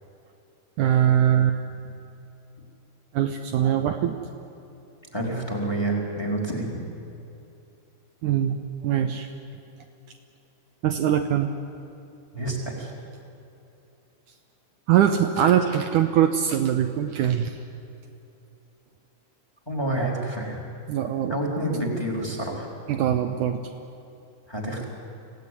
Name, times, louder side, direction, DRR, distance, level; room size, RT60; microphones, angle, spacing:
voice 1, 0.8-1.6 3.1-4.2 8.2-8.6 8.8-9.3 10.8-11.5 14.9-17.6 20.9-21.4 22.9-23.6, right 10 dB, 85° right, 5 dB, 1.8 m, -22 dB
voice 2, 5.1-6.8 12.3-12.9 19.7-20.6 21.3-22.7 24.5-24.8, right 1 dB, 5° left, 1 dB, 3.4 m, -28 dB
25.5 x 16.5 x 9.8 m, 2.8 s
omnidirectional pair, 4.7 m